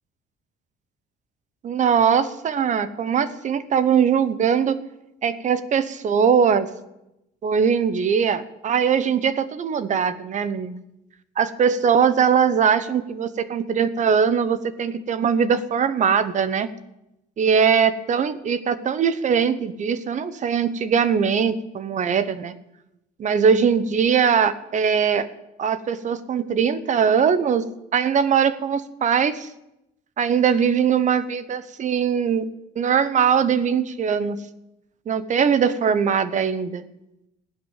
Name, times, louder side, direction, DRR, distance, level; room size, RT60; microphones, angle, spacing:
voice 1, 1.6-4.8 5.2-6.7 7.4-10.8 11.4-16.7 17.4-22.5 23.2-25.3 25.6-27.6 27.9-29.5 30.2-32.5 32.8-34.4 35.1-36.8, right 7 dB, 45° right, 15 dB, 1.1 m, -21 dB
15.5 x 11.0 x 7.4 m, 0.89 s
cardioid pair, 110°, 17 cm